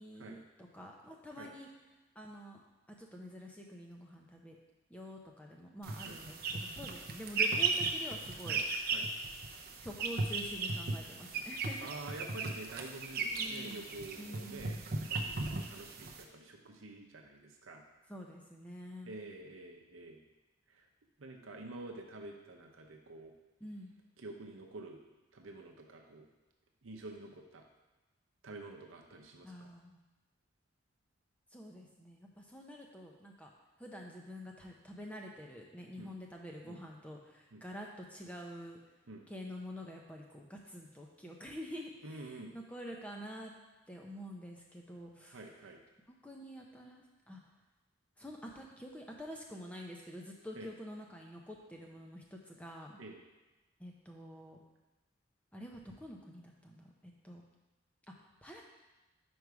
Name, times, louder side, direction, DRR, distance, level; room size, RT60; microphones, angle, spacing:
voice 1, 0.0-1.7 2.2-2.6 3.0-4.6 4.9-8.6 9.8-11.8 13.3-13.8 14.2-14.8 18.1-19.2 23.6-23.9 29.4-30.0 31.5-33.5 33.8-38.8 39.3-43.5 43.9-45.4 46.2-47.4 48.2-53.0 53.8-54.6 55.5-57.4 58.4-58.6, equal, 5° left, 0 dB, 0.6 m, -47 dB
sound 1, 5.8-16.2, right 4 dB, 45° right, 0.6 m, -36 dB
voice 2, 11.8-17.8 19.0-20.2 20.7-20.8 21.2-23.3 24.2-25.0 25.3-26.3 26.8-27.6 28.4-29.7 36.0-36.1 36.7-36.8 37.5-37.6 39.1-39.2 42.0-42.5 45.2-45.8 50.5-50.7 53.0-53.2, right 2 dB, 80° right, 1 dB, 0.7 m, -48 dB
5.4 x 4.7 x 4.7 m, 1.1 s
head